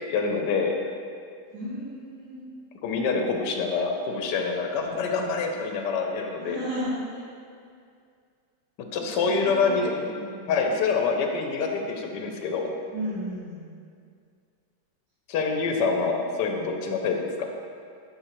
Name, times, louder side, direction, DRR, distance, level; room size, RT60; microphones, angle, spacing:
voice 1, 0.1-0.8 2.8-6.6 8.9-10.1 10.5-12.7 15.3-17.5, left 4 dB, 80° left, 3 dB, 1.2 m, -26 dB
voice 2, 1.5-2.4 6.4-7.2 9.2-10.5 12.9-13.6, equal, 90° right, -10 dB, 2.3 m, -34 dB
9.0 x 3.8 x 3.1 m, 2.3 s
omnidirectional pair, 1.9 m